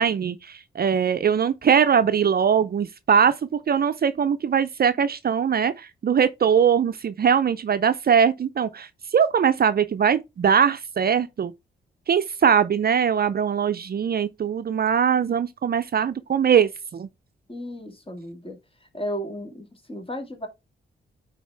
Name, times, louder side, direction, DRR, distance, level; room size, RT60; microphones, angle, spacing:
voice 1, 0.0-11.5 12.1-17.1, right 7 dB, 45° right, 0.5 m, -21 dB
voice 2, 17.5-18.6 18.9-20.5, equal, 25° left, 2.2 m, -34 dB
9.2 x 4.1 x 3.4 m
supercardioid pair, 55°, 21 cm